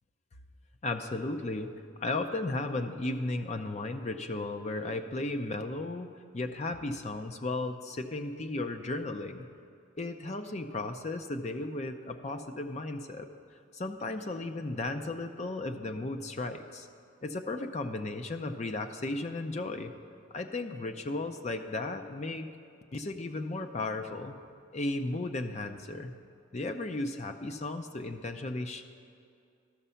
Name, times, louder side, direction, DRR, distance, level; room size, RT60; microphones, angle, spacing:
voice 1, 0.8-1.7 2.0-6.1 6.3-9.5 10.0-13.3 13.7-16.9 17.2-19.9 20.3-22.5 22.9-24.4 24.7-26.1 26.5-28.8, left 2 dB, 35° left, 6 dB, 0.5 m, -35 dB
13.5 x 6.0 x 5.6 m, 2.4 s
head